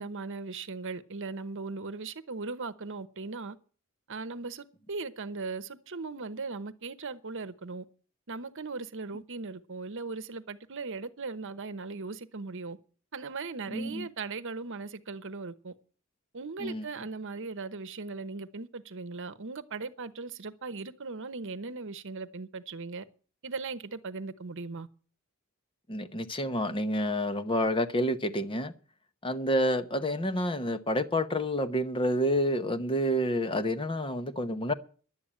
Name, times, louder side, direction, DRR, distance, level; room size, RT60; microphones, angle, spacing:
voice 1, 0.0-3.6 4.1-7.8 8.3-12.8 13.1-15.7 16.3-23.0 23.4-24.9, right 4 dB, 60° right, 1.0 m, -38 dB
voice 2, 13.7-14.0 16.6-16.8 25.9-28.7 29.2-34.7, equal, 25° left, 0.9 m, -29 dB
11.5 x 8.8 x 8.8 m
head